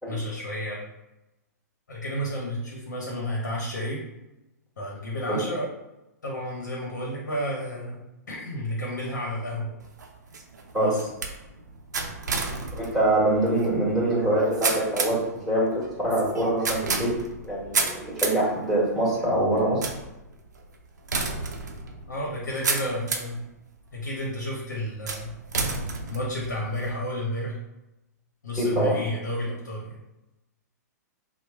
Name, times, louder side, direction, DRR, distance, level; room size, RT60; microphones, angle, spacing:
voice 1, 0.1-0.8 1.9-4.0 4.8-5.7 6.2-9.8 10.8-11.1 22.1-23.4 23.9-25.3 26.1-27.6 28.4-30.0, equal, 75° left, -3 dB, 0.9 m, -31 dB
sound 1, 9.8-23.4 24.0-24.4 25.1-26.9, right 4 dB, 75° right, 0.5 m, -32 dB
voice 2, 12.7-15.2 15.4-17.1 17.4-19.8 28.6-29.0, right 1 dB, 5° left, -7 dB, 1.4 m, -24 dB
3.0 x 2.1 x 3.4 m, 0.96 s
hypercardioid pair, 115°, 9 cm